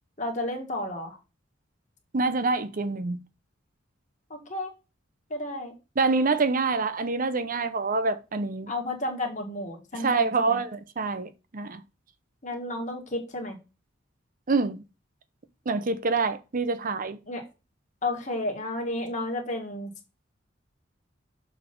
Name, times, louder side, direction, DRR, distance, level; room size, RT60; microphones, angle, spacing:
voice 1, 0.2-1.2 4.3-4.7 5.3-5.7 8.7-10.6 12.4-13.6 17.3-17.4 18.0-19.9, left 1 dB, 40° left, 1.9 m, -32 dB
voice 2, 2.1-3.2 6.0-8.7 9.9-11.8 14.5-14.8 15.7-17.2, right 3 dB, 45° right, 0.7 m, -26 dB
6.9 x 4.1 x 5.2 m
head